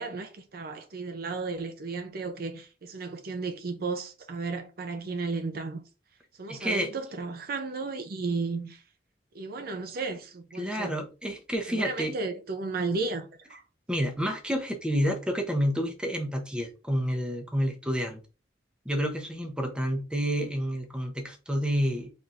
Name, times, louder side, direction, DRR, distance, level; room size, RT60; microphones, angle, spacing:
voice 1, 0.0-5.8 6.4-8.8 9.3-11.0 11.7-13.6, right 3 dB, 60° right, 0.6 m, -34 dB
voice 2, 6.5-6.9 10.5-12.2 13.9-18.2 18.8-22.1, equal, 5° right, 0.7 m, -29 dB
4.1 x 3.4 x 2.5 m
head